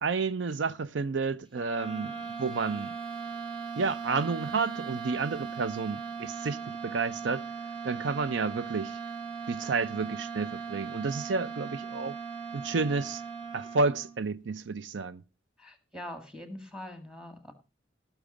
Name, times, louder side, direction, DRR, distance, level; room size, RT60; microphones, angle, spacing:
voice 1, 0.0-2.9 3.8-7.4 7.8-9.0 9.5-12.1 12.5-13.2 13.5-15.2, right 4 dB, 85° right, 0.6 m, -31 dB
sound 1, 1.5-14.2, right 5 dB, 30° right, 2.2 m, -39 dB
voice 2, 15.6-17.5, left 1 dB, 5° right, 1.8 m, -43 dB
17.0 x 6.1 x 4.9 m
head